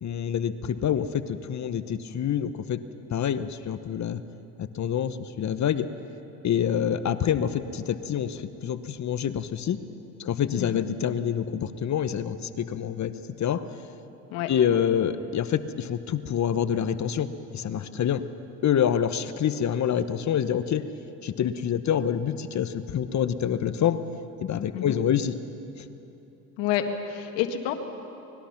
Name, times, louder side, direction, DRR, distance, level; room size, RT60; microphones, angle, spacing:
voice 1, 0.0-2.8 3.1-4.2 4.6-5.9 6.4-9.8 10.2-13.1 13.4-13.7 14.5-18.2 18.6-20.9 21.2-24.0 24.4-25.4 25.8-25.9, left 9 dB, 40° left, 12 dB, 1.0 m, -27 dB
voice 2, 10.6-10.9 14.3-14.5 24.7-25.0 26.6-27.7, left 10 dB, 75° left, 6 dB, 1.8 m, -29 dB
25.0 x 20.0 x 5.9 m, 2.9 s
supercardioid pair, 80°, 43 cm